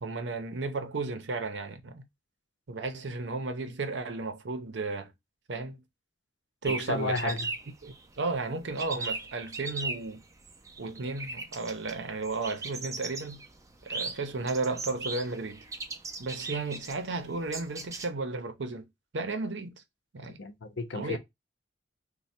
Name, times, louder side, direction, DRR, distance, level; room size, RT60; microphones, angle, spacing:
voice 1, 0.0-2.1 2.7-5.1 5.5-5.8 6.6-7.4 7.8-10.2 10.8-13.4 13.8-15.6 16.2-18.8 19.1-19.8 20.1-20.4 20.9-21.2, right 3 dB, 80° right, 0.7 m, -34 dB
sound 1, 6.6-18.1, right 3 dB, 15° right, 0.4 m, -39 dB
voice 2, 6.7-7.5 20.4-21.2, left 3 dB, 80° left, 0.7 m, -32 dB
3.2 x 2.2 x 4.3 m
head